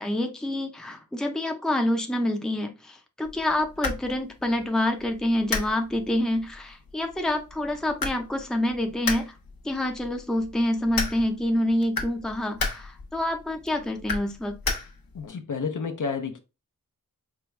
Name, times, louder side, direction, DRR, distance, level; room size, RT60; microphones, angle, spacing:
voice 1, 0.0-9.3 9.6-14.6, left 1 dB, ahead, 0.5 m, -27 dB
sound 1, 3.2-15.3, left 4 dB, 85° left, 0.8 m, -35 dB
voice 2, 15.1-16.4, left 5 dB, 60° left, 0.7 m, -30 dB
4.6 x 2.4 x 3.1 m
wide cardioid pair, 85°, 35 cm